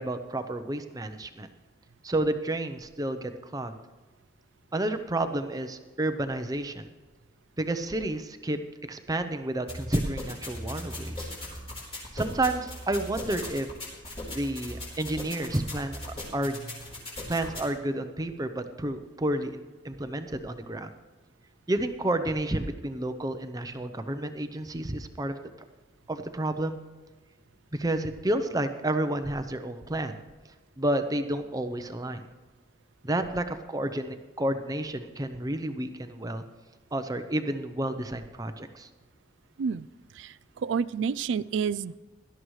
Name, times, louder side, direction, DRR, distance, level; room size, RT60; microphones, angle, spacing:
voice 1, 0.0-1.5 2.0-3.8 4.7-6.9 7.6-8.6 8.9-11.3 12.1-13.7 14.3-16.0 16.3-16.6 17.3-20.9 21.7-25.3 26.1-26.8 27.7-30.2 30.8-32.2 33.0-36.4 36.9-38.9, right 1 dB, 20° right, 8 dB, 0.6 m, -30 dB
sound 1, 9.7-17.7, left 1 dB, 30° left, 3.9 m, -39 dB
voice 2, 40.2-42.0, right 6 dB, 70° right, 19 dB, 0.3 m, -29 dB
17.5 x 12.5 x 3.2 m, 1.3 s
head